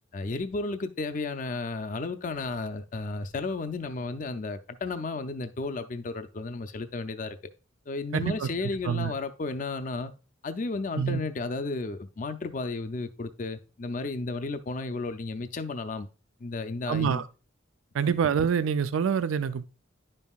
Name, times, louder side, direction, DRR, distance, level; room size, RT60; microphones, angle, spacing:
voice 1, 0.1-7.4 7.9-10.1 10.4-16.1 16.4-17.2 18.1-18.2, left 3 dB, 40° left, 0.4 m, -33 dB
voice 2, 8.1-8.5 8.8-9.1 11.0-11.2 16.9-17.2 17.9-19.7, right 7 dB, 85° right, 0.4 m, -26 dB
10.5 x 5.4 x 2.3 m
head